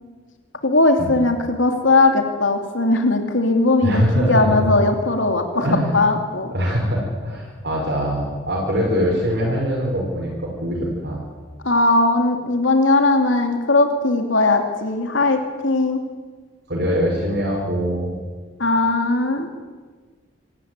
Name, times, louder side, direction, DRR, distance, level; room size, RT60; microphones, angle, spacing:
voice 1, 0.6-6.5 11.6-16.0 18.6-19.5, left 2 dB, 85° left, 4 dB, 2.6 m, -19 dB
voice 2, 3.8-4.7 5.5-6.0 6.5-11.2 16.7-18.2, equal, 55° right, -3 dB, 5.5 m, -22 dB
26.5 x 14.5 x 9.5 m, 1.5 s
head